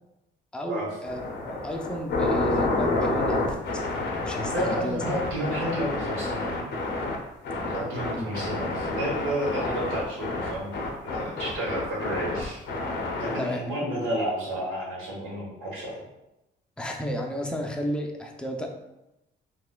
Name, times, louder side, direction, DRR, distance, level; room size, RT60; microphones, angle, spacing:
voice 1, 0.5-5.0 8.1-8.3 13.4-13.9 16.8-18.7, equal, 5° left, 1 dB, 0.5 m, -33 dB
sound 1, 1.0-7.2 7.4-13.4, left 2 dB, 65° left, 0.7 m, -29 dB
voice 2, 4.5-6.5 7.6-10.7 11.0-12.6 13.2-16.0, right 1 dB, 85° right, -5 dB, 1.4 m, -31 dB
4.0 x 2.3 x 2.3 m, 0.92 s
cardioid pair, 90°, 20 cm